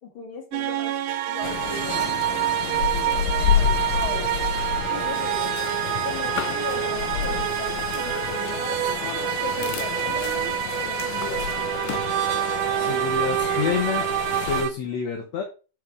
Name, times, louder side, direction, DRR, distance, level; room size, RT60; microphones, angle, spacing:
voice 1, 0.0-1.0 1.3-2.1 3.4-4.4 4.9-5.5 6.0-8.9 9.3-11.7, left 4 dB, 40° left, 0 dB, 2.7 m, -37 dB
sound 1, 0.5-14.7, right 13 dB, 85° right, 2.5 m, -27 dB
sound 2, 1.4-14.6, left 11 dB, 80° left, 1.9 m, -30 dB
voice 2, 12.8-14.1 14.5-15.4, left 7 dB, 60° left, 2 dB, 2.0 m, -27 dB
11.0 x 4.7 x 3.5 m, 0.32 s
omnidirectional pair, 4.4 m